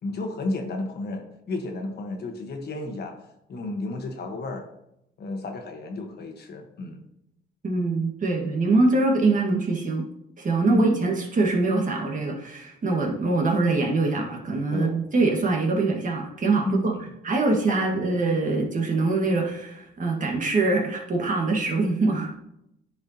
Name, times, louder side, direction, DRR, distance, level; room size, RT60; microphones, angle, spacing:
voice 1, 0.0-3.2 3.5-4.7 5.2-7.0 10.7-10.9 14.7-15.0 16.6-17.1, left 2 dB, 55° left, 4 dB, 1.3 m, -32 dB
voice 2, 7.6-10.1 10.4-16.9 17.2-22.3, right 3 dB, 40° right, 0 dB, 1.7 m, -23 dB
10.0 x 4.8 x 2.9 m, 0.81 s
cardioid pair, 90°, 20 cm